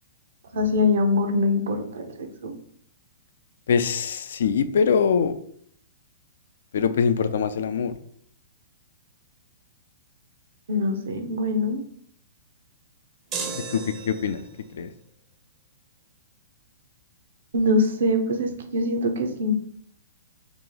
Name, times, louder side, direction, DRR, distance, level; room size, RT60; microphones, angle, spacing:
voice 1, 0.5-2.5 10.7-11.8 17.5-19.5, left 2 dB, 70° right, 6 dB, 0.7 m, -23 dB
voice 2, 3.7-5.3 6.7-7.9 13.6-14.4 14.7-14.9, left 6 dB, 70° left, 11 dB, 0.3 m, -23 dB
sound 1, 13.3-14.6, right 5 dB, 25° right, 0.5 m, -34 dB
2.9 x 2.8 x 3.9 m, 0.65 s
hypercardioid pair, 140°, 0 cm